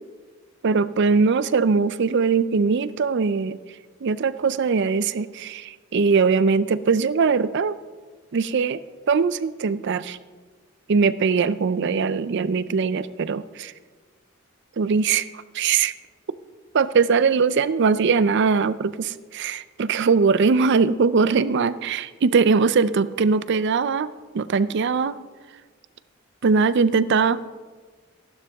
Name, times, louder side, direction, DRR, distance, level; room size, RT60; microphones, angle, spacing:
voice 1, 0.6-3.6 4.0-7.8 8.3-8.8 9.1-10.2 10.9-13.7 14.8-15.3 15.5-15.9 16.7-25.2 26.4-27.4, right 5 dB, 60° right, 16 dB, 0.4 m, -21 dB
15.0 x 11.5 x 3.5 m, 1.4 s
head